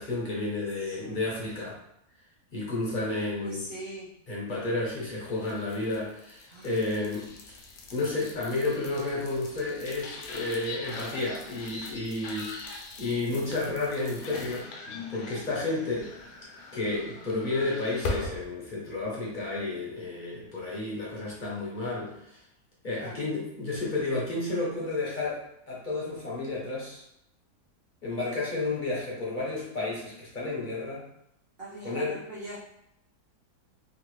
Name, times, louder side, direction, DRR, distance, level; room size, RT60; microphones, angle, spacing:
voice 1, 0.0-1.8 2.5-3.6 4.3-7.3 7.9-14.7 15.1-16.1 16.7-22.4 22.8-25.4 25.7-27.0 28.0-31.0 31.8-32.2, left 2 dB, 40° left, -5 dB, 0.8 m, -31 dB
voice 2, 0.8-1.3 3.1-4.1 6.5-6.7 23.0-23.3 31.6-32.6, right 1 dB, 55° right, -7 dB, 0.6 m, -42 dB
sound 1, 4.8-18.5, left 3 dB, 75° left, 1.2 m, -41 dB
3.1 x 2.5 x 3.0 m, 0.77 s
omnidirectional pair, 1.8 m